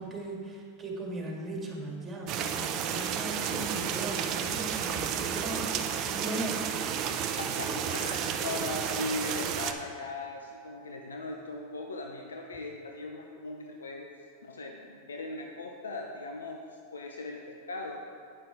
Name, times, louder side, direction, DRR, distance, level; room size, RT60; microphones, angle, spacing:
voice 1, 0.0-6.9 7.7-7.8, right 1 dB, 20° right, -1 dB, 2.0 m, -38 dB
sound 1, 2.3-9.7, right 8 dB, 45° right, 0.6 m, -32 dB
voice 2, 7.4-18.0, left 3 dB, 85° left, 1 dB, 0.7 m, -39 dB
8.6 x 5.9 x 4.9 m, 2.2 s
hypercardioid pair, 95°, 0 cm